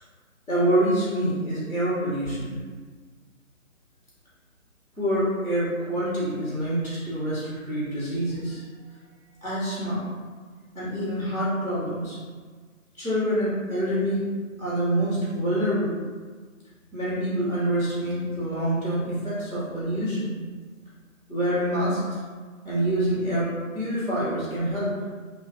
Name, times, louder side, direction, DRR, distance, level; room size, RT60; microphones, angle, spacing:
voice 1, 0.5-2.6 5.0-8.6 9.4-10.0 10.7-12.2 13.0-14.2 14.6-16.0 16.9-20.3 21.3-22.0 22.6-23.5 23.7-24.9, right 1 dB, 5° left, -27 dB, 1.0 m, -26 dB
2.8 x 2.3 x 3.9 m, 1.5 s
figure-of-eight pair, 165°, 42 cm